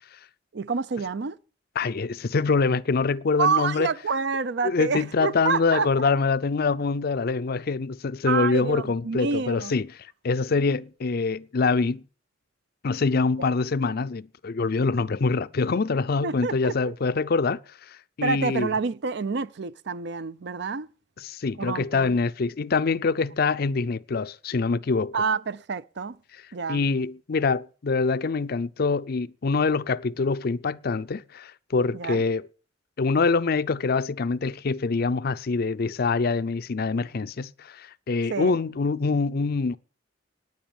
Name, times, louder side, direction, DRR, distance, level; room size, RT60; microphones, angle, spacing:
voice 1, 0.5-1.4 3.4-5.9 8.3-9.7 13.4-13.5 16.2-16.9 18.2-20.9 21.6-22.2 25.1-26.2 26.5-26.8 31.9-32.2 38.3-38.6, right 5 dB, 60° right, 0.5 m, -28 dB
voice 2, 1.8-3.9 4.6-9.9 10.2-12.0 12.8-17.6 17.9-18.7 21.2-25.2 26.7-32.5 33.0-39.8, left 4 dB, 50° left, 0.5 m, -25 dB
10.5 x 9.8 x 7.1 m
head